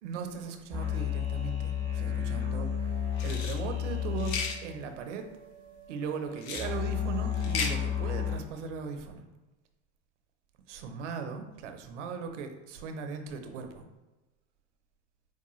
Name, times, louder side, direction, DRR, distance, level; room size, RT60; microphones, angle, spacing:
voice 1, 0.0-2.7 3.2-5.3 5.9-9.2 10.7-13.8, right 5 dB, 80° right, 6 dB, 0.6 m, -38 dB
sound 1, 0.7-8.4, left 9 dB, 10° left, 1.1 m, -33 dB
sound 2, 3.2-3.6 4.2-4.6 6.4-6.7 7.3-7.7, left 5 dB, 65° left, 0.7 m, -34 dB
4.6 x 2.1 x 3.0 m, 1.1 s
hypercardioid pair, 110°, 35 cm